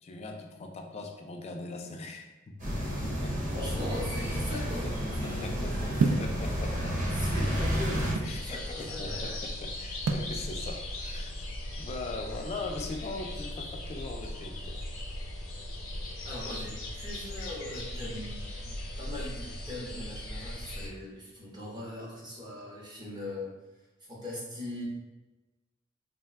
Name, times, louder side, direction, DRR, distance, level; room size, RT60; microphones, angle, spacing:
voice 1, 0.0-3.5 4.3-7.1 7.4-7.6 8.2-11.3 11.8-14.8, left 3 dB, 30° left, 3 dB, 0.3 m, -41 dB
sound 1, 2.6-8.1, equal, 40° right, 1.0 m, -31 dB
voice 2, 3.5-4.8 5.2-6.2 7.1-9.4 16.2-23.5 24.1-24.8, left 1 dB, 20° right, -5 dB, 0.7 m, -40 dB
sound 2, 6.0-6.3 7.2-8.4 10.1-10.4, right 4 dB, 75° right, 0.3 m, -28 dB
sound 3, 8.2-20.9, left 1 dB, 80° left, 0.6 m, -38 dB
2.5 x 2.1 x 3.3 m, 1.1 s
head